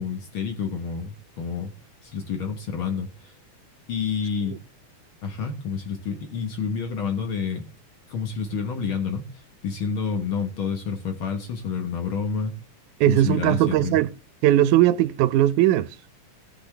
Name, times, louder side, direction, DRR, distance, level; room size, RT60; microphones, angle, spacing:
voice 1, 0.0-1.7 2.0-3.4 3.9-4.6 5.2-7.7 8.1-12.6 13.1-14.0, left 6 dB, 55° left, 1.7 m, -29 dB
voice 2, 13.0-14.1 14.4-15.9, right 13 dB, 85° right, 2.1 m, -19 dB
17.5 x 6.1 x 3.3 m
omnidirectional pair, 3.4 m